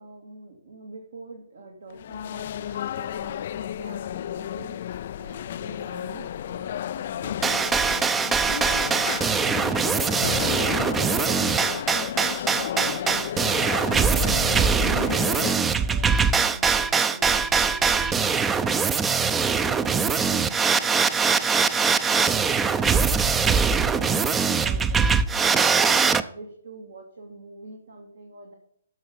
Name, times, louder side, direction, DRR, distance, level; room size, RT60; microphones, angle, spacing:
voice 1, 0.0-20.2 20.7-25.9 26.3-28.6, right 2 dB, 70° right, 2 dB, 2.2 m, -44 dB
sound 1, 1.9-15.5, left 10 dB, 50° left, 0.3 m, -32 dB
sound 2, 7.4-26.2, right 5 dB, 15° right, 0.6 m, -22 dB
13.5 x 5.7 x 5.2 m, 0.67 s
figure-of-eight pair, 130°, 0 cm